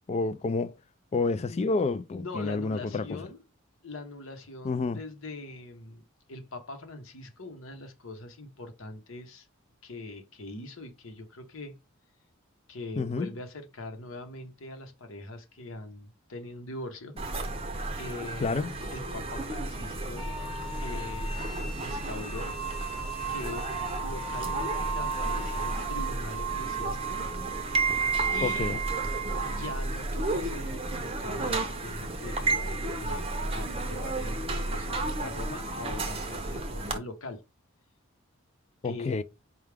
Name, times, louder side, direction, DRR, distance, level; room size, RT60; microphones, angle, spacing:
voice 1, 0.1-0.7 1.1-3.1 4.6-5.0 13.0-13.3 18.4-18.7 28.4-28.8 38.8-39.2, left 3 dB, 30° left, 0.3 m, -29 dB
voice 2, 2.1-3.4 3.8-6.0 6.3-9.5 9.8-11.8 12.7-17.1 18.0-20.3 20.8-21.5 21.8-22.6 23.3-23.7 24.0-27.3 28.3-28.7 29.4-37.4 38.8-39.2, left 2 dB, 70° left, 0.9 m, -42 dB
sound 1, 17.2-37.0, right 2 dB, 25° right, 0.6 m, -32 dB
sound 2, 20.2-25.8, left 6 dB, ahead, 0.9 m, -42 dB
sound 3, 22.2-29.9, right 11 dB, 80° right, 0.5 m, -37 dB
4.6 x 2.3 x 3.3 m
head